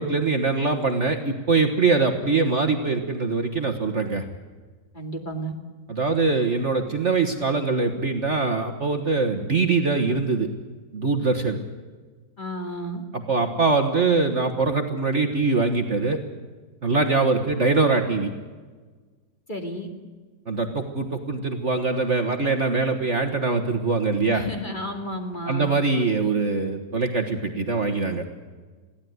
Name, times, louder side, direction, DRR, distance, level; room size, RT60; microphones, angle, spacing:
voice 1, 0.0-4.2 5.9-10.5 10.9-11.6 13.3-16.2 16.8-18.3 20.5-24.4 25.5-28.2, right 3 dB, 40° right, 6 dB, 1.7 m, -23 dB
voice 2, 4.9-5.5 12.4-13.0 19.5-19.9 24.3-25.7, equal, 25° left, 4 dB, 2.5 m, -32 dB
22.5 x 16.5 x 9.4 m, 1.4 s
omnidirectional pair, 2.1 m